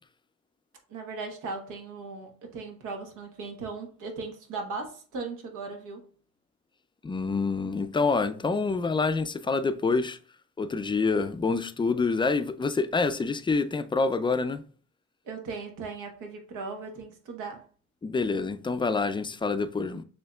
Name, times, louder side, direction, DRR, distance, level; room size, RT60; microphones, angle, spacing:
voice 1, 0.9-6.1 15.2-17.6, right 4 dB, 85° right, 1.2 m, -38 dB
voice 2, 7.0-10.2 10.6-14.6 18.0-20.0, left 4 dB, 15° left, 0.4 m, -27 dB
6.8 x 2.8 x 2.3 m
cardioid pair, 90°, 30 cm